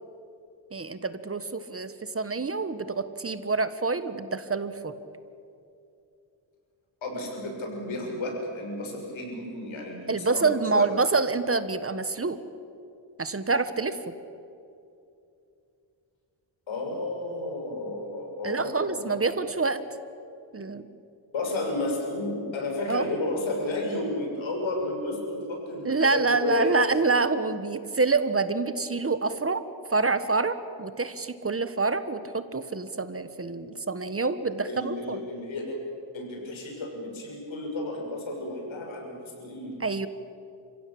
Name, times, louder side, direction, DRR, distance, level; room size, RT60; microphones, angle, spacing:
voice 1, 0.7-4.9 10.1-12.4 13.2-14.1 18.4-19.8 20.5-20.9 22.9-23.0 25.8-29.6 29.9-35.2 39.8-40.1, right 4 dB, 30° right, 12 dB, 1.4 m, -27 dB
voice 2, 7.0-10.9 16.7-19.1 21.3-26.7 34.5-35.8 36.1-39.8, left 2 dB, 85° left, 1 dB, 6.8 m, -32 dB
30.0 x 16.0 x 8.7 m, 2.6 s
cardioid pair, 85°, 46 cm